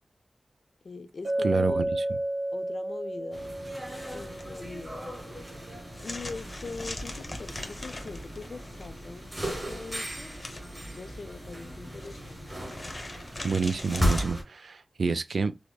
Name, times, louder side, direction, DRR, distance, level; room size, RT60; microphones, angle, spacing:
voice 1, 0.8-1.9 2.5-3.8 4.1-5.0 6.0-12.6, left 4 dB, 65° left, 0.4 m, -42 dB
Chink clink, 1.2-5.3, right 1 dB, 50° right, 1.3 m, -32 dB
voice 2, 1.4-2.0 13.4-15.6, right 4 dB, 75° right, 0.4 m, -29 dB
sound 1, 3.3-14.4, equal, 25° right, 1.5 m, -36 dB
sound 2, 3.8-14.2, left 1 dB, 30° left, 0.8 m, -43 dB
4.8 x 2.0 x 2.3 m
wide cardioid pair, 110°, 0 cm